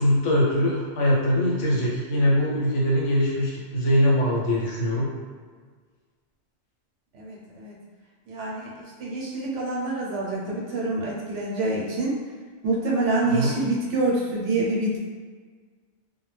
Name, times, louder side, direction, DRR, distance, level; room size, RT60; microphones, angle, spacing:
voice 1, 0.0-5.1 13.2-13.5, equal, 80° left, -4 dB, 1.0 m, -22 dB
voice 2, 7.1-7.8 8.3-8.7 9.0-12.1 12.6-14.9, right 2 dB, 75° right, -3 dB, 0.9 m, -26 dB
2.3 x 2.1 x 3.1 m, 1.6 s
omnidirectional pair, 1.3 m